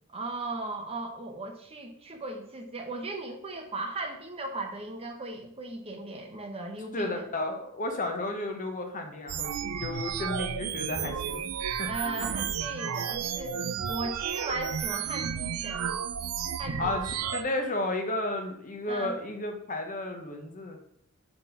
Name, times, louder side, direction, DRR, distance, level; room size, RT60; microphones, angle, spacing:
voice 1, 0.1-7.3 11.9-13.6 13.9-15.9 16.6-17.1 18.9-19.1, right 2 dB, 25° right, 3 dB, 0.9 m, -37 dB
voice 2, 6.9-9.5 9.8-11.5 11.8-11.9 12.1-12.4 16.8-20.8, left 2 dB, 35° left, 3 dB, 0.9 m, -33 dB
sound 1, 9.3-17.4, right 8 dB, 75° right, 0.5 m, -32 dB
5.2 x 4.2 x 5.8 m, 0.70 s
head